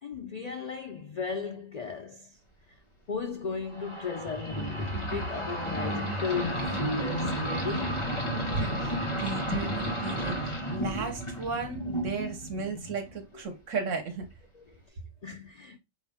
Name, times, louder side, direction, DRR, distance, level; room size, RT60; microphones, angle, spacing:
voice 1, 0.0-2.4 3.1-8.1 13.3-13.4 14.5-15.8, left 5 dB, 65° left, 0.4 m, -36 dB
sound 1, 3.7-13.1, right 1 dB, 25° left, 1.3 m, -32 dB
voice 2, 8.5-14.3, right 4 dB, 70° right, 1.4 m, -35 dB
5.5 x 2.6 x 3.5 m
omnidirectional pair, 1.3 m